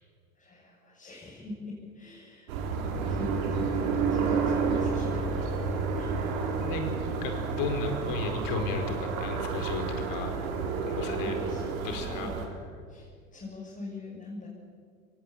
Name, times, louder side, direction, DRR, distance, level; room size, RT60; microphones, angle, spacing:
voice 1, 0.4-2.5 3.0-5.4 6.0-6.2 11.2-12.4 12.9-14.5, left 3 dB, 20° left, -6 dB, 7.1 m, -43 dB
sound 1, 2.5-12.5, right 5 dB, 75° right, 4.5 m, -30 dB
voice 2, 7.2-10.3 10.8-11.3 11.8-12.3, left 4 dB, 50° left, 5 dB, 4.8 m, -34 dB
22.5 x 18.5 x 8.8 m, 2.1 s
hypercardioid pair, 110°, 43 cm